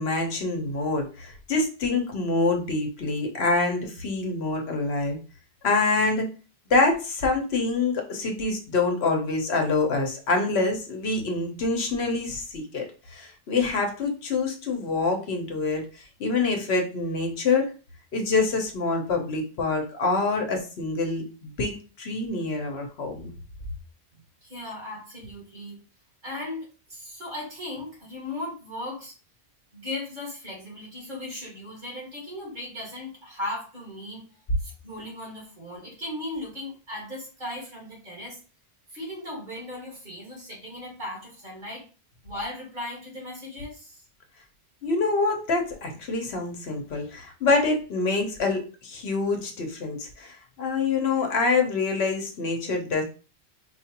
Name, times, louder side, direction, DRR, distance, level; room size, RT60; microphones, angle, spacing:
voice 1, 0.0-5.2 5.6-6.3 6.7-17.7 18.1-23.3 44.8-53.0, left 3 dB, 70° left, 3 dB, 1.0 m, -26 dB
voice 2, 24.4-25.8 26.2-29.1 29.7-38.4 38.9-41.9 42.2-44.0, left 1 dB, 50° right, -2 dB, 1.7 m, -37 dB
4.4 x 2.4 x 2.8 m, 0.36 s
omnidirectional pair, 1.1 m